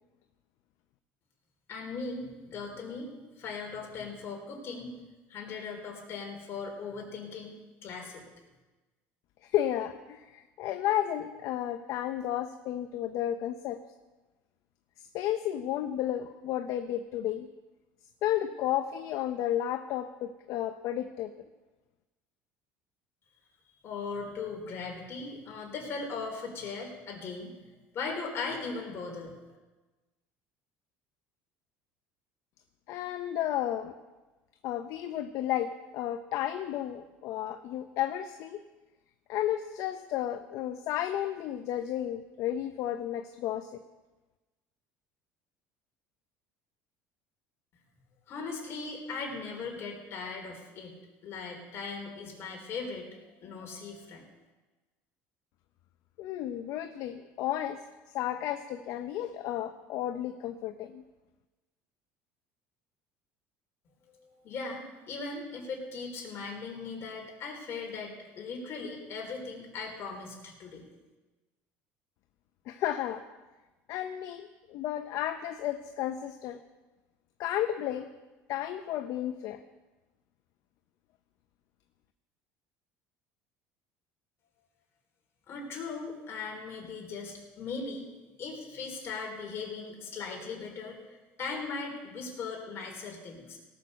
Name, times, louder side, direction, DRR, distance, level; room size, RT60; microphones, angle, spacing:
voice 1, 1.7-4.9 5.3-7.6 7.8-8.3 23.8-27.5 27.9-29.4 48.3-54.2 64.1-70.8 85.5-88.1 88.4-93.6, left 4 dB, 45° left, 1 dB, 3.9 m, -39 dB
voice 2, 9.4-13.8 15.1-17.5 18.2-21.3 32.9-33.9 34.6-38.6 39.3-43.8 56.2-57.8 58.1-61.0 72.7-73.2 73.9-76.6 77.4-78.1 78.5-79.6, left 11 dB, 65° left, 8 dB, 0.7 m, -32 dB
18.0 x 6.5 x 6.8 m, 1.2 s
supercardioid pair, 115°, 6 cm